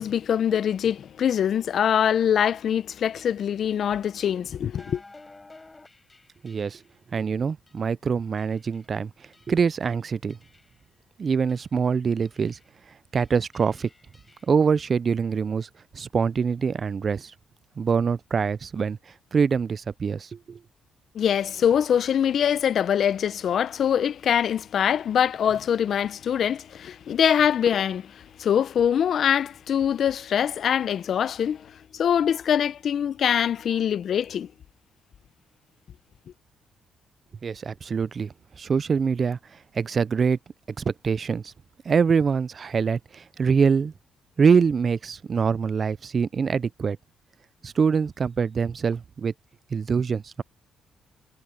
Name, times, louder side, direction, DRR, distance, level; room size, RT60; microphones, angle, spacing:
voice 1, 0.0-5.0 21.1-34.5, left 9 dB, 60° left, 0.6 m, -23 dB
sound 1, 4.7-7.0 7.7-7.9 8.4-8.9 9.3-9.8 10.3-10.9 11.5-11.8 12.2-12.8 13.2-14.5, left 2 dB, 20° left, 4.3 m, -53 dB
voice 2, 6.4-6.8 7.1-9.1 9.5-10.4 11.2-12.6 13.1-13.9 14.5-15.7 15.9-17.3 17.8-19.0 19.3-20.6 37.4-39.4 39.7-40.4 40.8-41.5 41.9-43.9 44.4-47.0 47.6-49.3 49.7-50.4, right 6 dB, 40° right, 0.3 m, -24 dB
cardioid pair, 90°, 0 cm